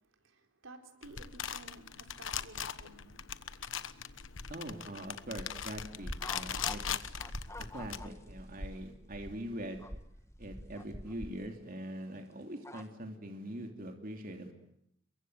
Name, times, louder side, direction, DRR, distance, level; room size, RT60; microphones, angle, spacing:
voice 1, 0.2-3.1 4.0-4.1, right 2 dB, 90° right, 5 dB, 4.2 m, -54 dB
sound 1, 1.0-8.0, left 8 dB, 75° left, 1.2 m, -40 dB
voice 2, 4.5-7.3 7.7-9.8 10.4-14.5, right 1 dB, 45° right, 4 dB, 3.0 m, -43 dB
sound 2, 6.0-11.4, equal, 5° right, 1.4 m, -46 dB
sound 3, 6.2-6.9 7.2-8.4 8.8-8.9 9.8-9.9 10.8-11.1 12.6-12.8, left 3 dB, 15° left, 1.6 m, -45 dB
29.5 x 23.5 x 8.0 m, 0.76 s
head